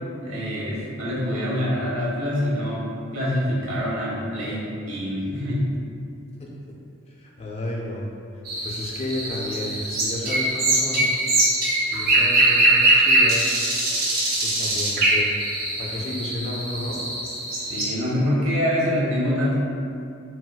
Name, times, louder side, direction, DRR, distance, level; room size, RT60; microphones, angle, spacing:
voice 1, 0.2-5.7 17.7-19.5, equal, 90° right, -7 dB, 0.9 m, -25 dB
voice 2, 7.1-8.1 8.3-11.1 11.9-13.6 14.0-15.3 15.8-17.1, left 1 dB, 30° left, -3 dB, 0.3 m, -32 dB
sound 1, 8.4-17.8, right 1 dB, 45° right, 0.6 m, -22 dB
3.8 x 2.1 x 2.2 m, 2.5 s
head